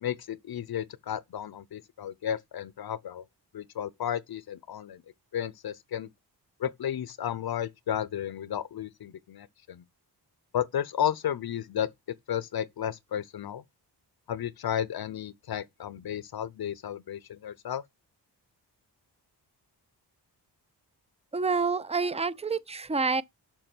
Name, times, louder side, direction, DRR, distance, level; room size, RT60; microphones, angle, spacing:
voice 1, 0.0-3.2 3.5-5.0 5.3-6.1 6.6-9.8 10.5-11.9 12.3-13.6 14.3-17.8, left 10 dB, 60° left, 0.7 m, -33 dB
voice 2, 21.3-23.2, right 4 dB, 15° right, 0.5 m, -28 dB
6.8 x 5.9 x 5.9 m
wide cardioid pair, 95°, 42 cm